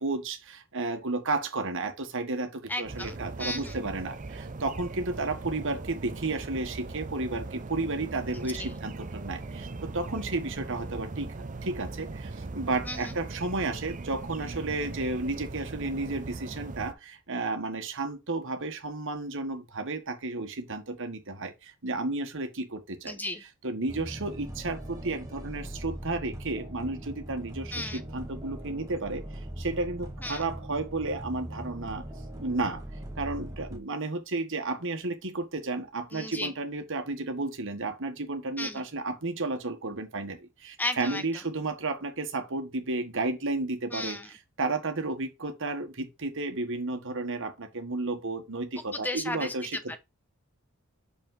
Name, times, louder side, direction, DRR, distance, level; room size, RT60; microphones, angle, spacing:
voice 1, 0.0-0.3 0.7-2.5 2.8-4.1 4.6-4.9 5.2-5.8 6.2-6.7 6.9-7.4 7.7-8.9 9.2-9.4 9.9-10.4 10.7-11.2 11.7-12.1 12.5-16.2 16.6-16.9 17.3-19.6 19.9-21.5 21.8-22.5 23.6-24.3 24.6-24.8 25.0-25.2 25.4-27.0 27.3-27.4 28.1-29.2 29.8-32.0 32.4-32.8 33.2-33.5 33.7-35.8 36.1-40.3 41.0-41.9 42.3-44.1 44.6-45.9 46.2-47.5 47.8-48.7 49.0-49.6, right 3 dB, 60° right, 1.6 m, -31 dB
voice 2, 2.7-3.8 8.3-8.8 12.8-13.2 23.1-23.4 27.7-28.0 30.2-30.5 36.1-36.5 38.6-38.9 40.8-41.5 43.9-44.3 48.8-50.0, left 1 dB, 10° left, 1.0 m, -35 dB
sound 1, 2.8-16.9, right 3 dB, 35° right, 0.6 m, -39 dB
sound 2, 23.9-33.8, right 1 dB, 15° right, 1.6 m, -40 dB
6.2 x 5.4 x 3.8 m
head